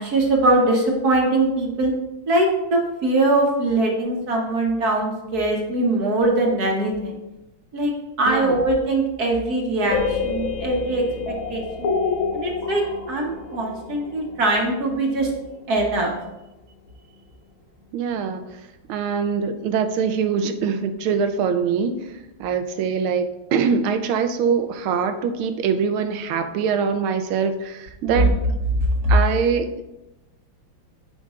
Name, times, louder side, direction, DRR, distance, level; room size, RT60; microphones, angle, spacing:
voice 1, 0.0-1.9 2.3-7.1 7.7-7.9 8.2-11.9 12.3-15.3 15.7-16.1 28.0-28.3 29.0-29.1, right 2 dB, 55° right, 0 dB, 1.4 m, -22 dB
sound 1, 9.9-15.7, left 5 dB, 85° left, 1.7 m, -28 dB
voice 2, 17.9-18.4 18.9-22.1 22.4-28.4 29.1-29.8, right 6 dB, 85° right, 8 dB, 1.5 m, -23 dB
12.0 x 5.3 x 2.4 m, 0.96 s
omnidirectional pair, 2.2 m